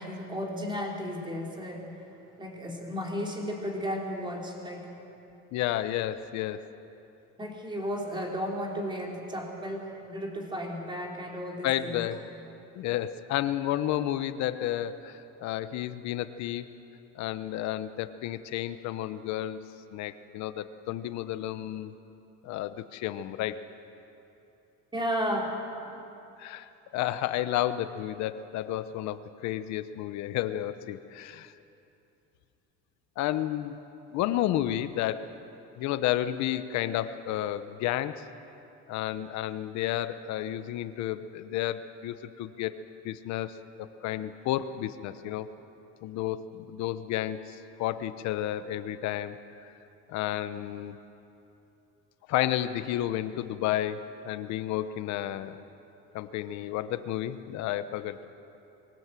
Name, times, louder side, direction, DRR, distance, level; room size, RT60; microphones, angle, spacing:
voice 1, 0.0-1.9 2.4-4.9 7.4-12.0 24.9-25.6, equal, 15° right, -1 dB, 3.5 m, -34 dB
voice 2, 5.5-6.6 11.6-12.3 12.7-16.7 17.1-19.6 19.9-21.9 22.4-23.6 26.4-31.5 33.2-33.8 34.1-35.3 35.8-38.2 38.9-42.8 43.0-45.5 46.0-49.4 50.1-51.0 52.3-55.6 56.1-58.3, left 12 dB, 70° left, 12 dB, 1.0 m, -31 dB
22.5 x 17.5 x 7.7 m, 2.8 s
cardioid pair, 130°, 29 cm